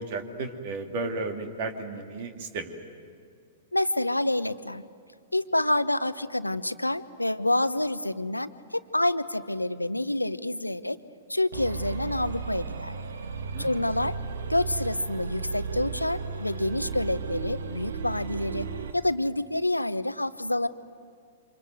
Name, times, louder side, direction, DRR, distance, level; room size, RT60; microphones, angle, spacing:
voice 1, 0.0-2.7 13.5-13.8, right 3 dB, 50° right, 5 dB, 2.7 m, -34 dB
voice 2, 3.7-4.8 5.3-11.0 11.3-12.9 13.6-14.1 14.5-18.7 18.9-20.7, left 1 dB, 90° left, 13 dB, 0.9 m, -28 dB
sound 1, 11.5-19.0, right 5 dB, 65° right, 1.6 m, -35 dB
28.5 x 26.0 x 7.9 m, 2.2 s
figure-of-eight pair, 105°, 0 cm